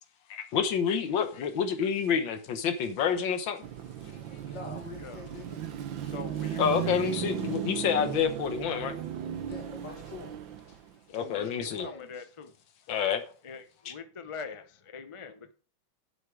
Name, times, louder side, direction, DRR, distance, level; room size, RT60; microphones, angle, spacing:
voice 1, 0.3-3.6 6.6-8.9 11.1-11.9 12.9-13.2 13.9-14.0, left 7 dB, 90° left, 1.8 m, -28 dB
Car passing by / Traffic noise roadway noise / Engine, 3.6-11.0, right 10 dB, 85° right, 1.7 m, -36 dB
voice 2, 4.5-5.6 9.4-10.3 11.2-12.2, left 4 dB, 70° left, 2.9 m, -45 dB
voice 3, 6.1-7.1 9.5-10.0 11.2-12.5 13.4-15.5, left 5 dB, 40° left, 0.4 m, -44 dB
8.1 x 7.7 x 4.8 m
omnidirectional pair, 2.0 m